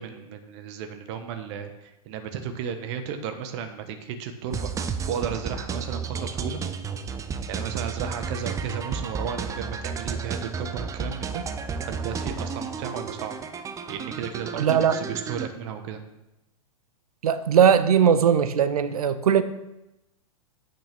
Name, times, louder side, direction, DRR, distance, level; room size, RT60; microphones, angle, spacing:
voice 1, 0.0-4.7 5.1-6.6 7.5-11.4 11.8-13.4 13.9-16.0, right 8 dB, 50° right, 7 dB, 1.2 m, -34 dB
sound 1, 4.5-15.5, right 5 dB, 15° right, 0.6 m, -32 dB
voice 2, 14.6-15.0 17.2-19.4, right 8 dB, 75° right, 13 dB, 0.8 m, -19 dB
8.7 x 6.1 x 6.0 m, 0.91 s
hypercardioid pair, 110°, 19 cm